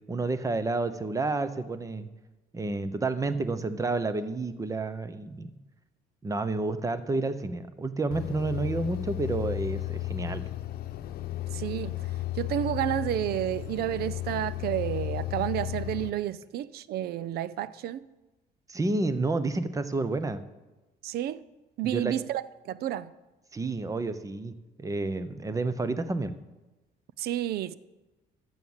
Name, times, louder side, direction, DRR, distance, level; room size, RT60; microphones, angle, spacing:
voice 1, 0.1-2.1 2.5-5.5 6.2-10.4 18.7-20.4 21.8-22.2 23.5-24.5 24.8-26.3, right 3 dB, 20° right, 0.9 m, -30 dB
sound 1, 8.1-16.1, left 16 dB, 65° left, 0.8 m, -34 dB
voice 2, 11.5-12.1 12.4-18.0 21.0-21.4 21.8-23.1 27.2-27.7, right 12 dB, 70° right, 0.6 m, -31 dB
12.0 x 7.2 x 7.3 m
cardioid pair, 110°, 17 cm